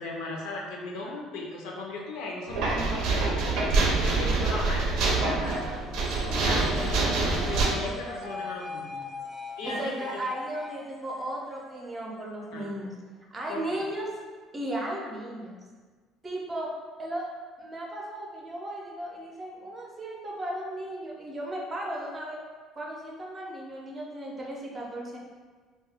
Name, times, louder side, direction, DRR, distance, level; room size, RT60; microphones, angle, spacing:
voice 1, 0.0-5.9 6.5-9.0 9.6-10.2 12.5-12.7 13.5-13.8, left 2 dB, 85° left, -1 dB, 0.6 m, -37 dB
sound 1, 2.5-7.7, right 3 dB, 70° right, 0.5 m, -26 dB
sound 2, 5.0-12.5, left 3 dB, 25° left, 0.5 m, -41 dB
voice 2, 9.6-12.9 13.3-14.1 14.5-15.6 16.2-16.7 17.0-17.3 17.6-22.4 22.8-25.2, right 1 dB, 20° right, -2 dB, 0.5 m, -35 dB
2.7 x 2.2 x 3.4 m, 1.4 s
cardioid pair, 140°, 0 cm